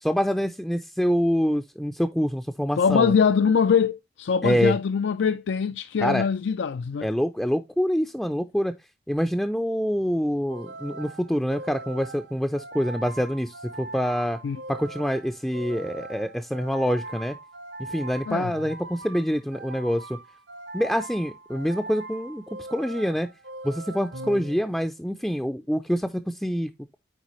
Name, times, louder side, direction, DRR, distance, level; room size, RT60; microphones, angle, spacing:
voice 1, 0.0-3.1 4.4-4.8 6.0-6.3 7.0-8.7 9.1-14.4 14.7-17.4 17.9-20.2 20.7-22.4 22.7-23.3 23.6-27.0, equal, ahead, 0.4 m, -26 dB
voice 2, 2.8-7.1 14.4-14.6 18.3-18.5, left 6 dB, 90° left, 0.4 m, -23 dB
sound 1, 10.5-25.0, right 2 dB, 85° right, 1.0 m, -41 dB
8.2 x 4.8 x 3.0 m
head